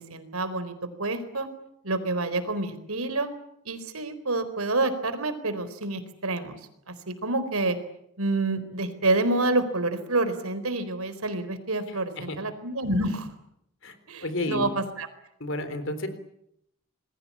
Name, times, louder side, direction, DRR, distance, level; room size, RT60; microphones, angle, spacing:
voice 1, 0.0-1.5 1.8-3.3 3.6-6.6 6.9-7.8 8.2-13.3 14.1-15.1, right 2 dB, 90° right, 11 dB, 4.2 m, -28 dB
voice 2, 14.2-14.7 15.4-16.1, left 1 dB, 60° left, 11 dB, 3.9 m, -30 dB
27.5 x 21.5 x 8.6 m, 0.76 s
head